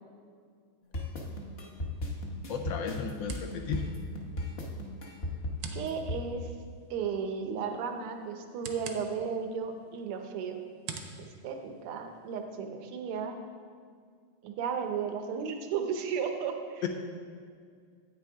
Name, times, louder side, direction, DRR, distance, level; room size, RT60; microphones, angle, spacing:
sound 1, 0.9-6.2, left 1 dB, 40° left, 0.9 m, -35 dB
sound 2, 1.5-12.5, right 5 dB, 65° right, 1.2 m, -50 dB
voice 1, 2.5-3.8 16.8-16.9, left 7 dB, 75° left, 4 dB, 1.2 m, -34 dB
voice 2, 5.7-6.5 6.9-10.6 11.2-13.4 14.4-16.9, right 6 dB, 85° right, 5 dB, 1.7 m, -34 dB
9.6 x 8.5 x 3.5 m, 2.1 s
omnidirectional pair, 2.4 m